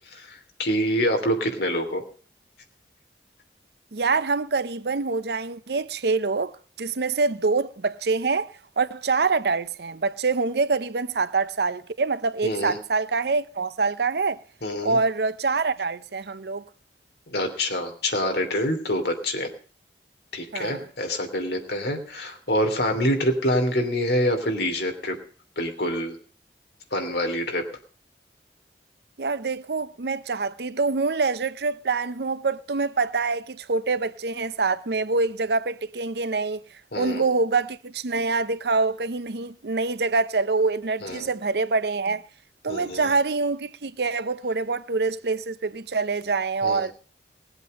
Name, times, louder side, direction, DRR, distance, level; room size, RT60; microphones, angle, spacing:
voice 1, 0.1-2.0 12.4-12.8 14.6-15.0 17.3-19.5 20.3-25.2 25.6-26.2 26.9-27.6 36.9-37.3 41.0-41.3 42.7-43.0 46.6-46.8, equal, 70° left, 2.9 m, -26 dB
voice 2, 3.9-14.4 14.8-16.6 20.5-20.9 29.2-36.6 37.0-42.2 42.6-46.9, right 4 dB, 70° right, 0.7 m, -25 dB
18.5 x 8.1 x 6.5 m
head